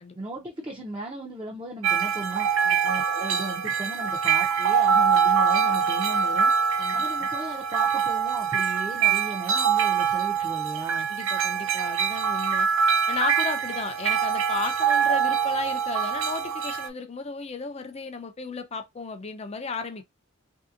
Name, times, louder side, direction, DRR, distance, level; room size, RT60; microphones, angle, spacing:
voice 1, 0.2-2.5 2.8-6.5 6.9-11.1, right 2 dB, 20° right, 0.7 m, -36 dB
sound 1, 1.8-16.9, right 7 dB, 65° right, 0.5 m, -24 dB
voice 2, 6.8-7.3 10.4-10.5 11.1-12.7 13.1-20.0, left 4 dB, 30° left, 0.5 m, -34 dB
3.2 x 2.7 x 2.5 m
head